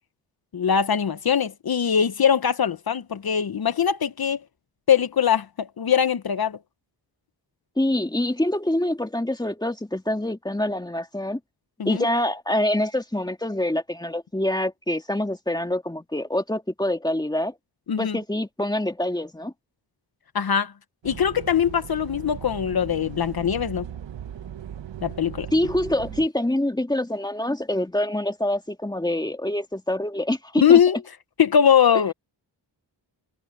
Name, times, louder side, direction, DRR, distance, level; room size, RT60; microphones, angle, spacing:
voice 1, 0.5-4.4 4.9-6.6 11.8-12.0 17.9-18.2 20.3-20.7 21.0-23.9 25.0-25.5 30.6-31.0 31.4-32.1, left 8 dB, 55° left, 1.0 m, -21 dB
voice 2, 7.8-11.4 11.9-17.5 18.0-19.5 25.5-30.8, left 1 dB, 10° left, 2.3 m, -25 dB
sound 1, 21.0-26.3, right 9 dB, 85° right, 1.2 m, -38 dB
cardioid pair, 75°, 43 cm